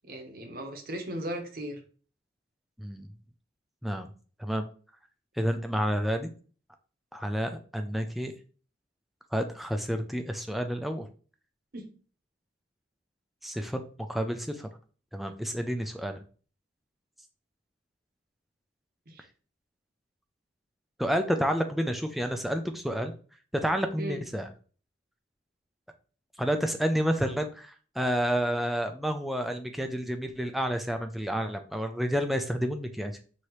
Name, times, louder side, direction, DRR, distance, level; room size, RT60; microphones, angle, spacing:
voice 1, 0.1-1.8 11.7-11.9 19.1-19.2 24.0-24.2, right 1 dB, 50° right, 4 dB, 0.8 m, -37 dB
voice 2, 2.8-3.1 3.8-4.1 4.4-4.7 5.4-6.3 7.1-8.3 9.3-11.1 13.4-13.8 14.1-14.7 15.1-16.2 21.0-23.1 23.6-24.5 26.4-33.1, equal, ahead, 5 dB, 0.3 m, -30 dB
4.7 x 2.8 x 3.0 m, 0.40 s
head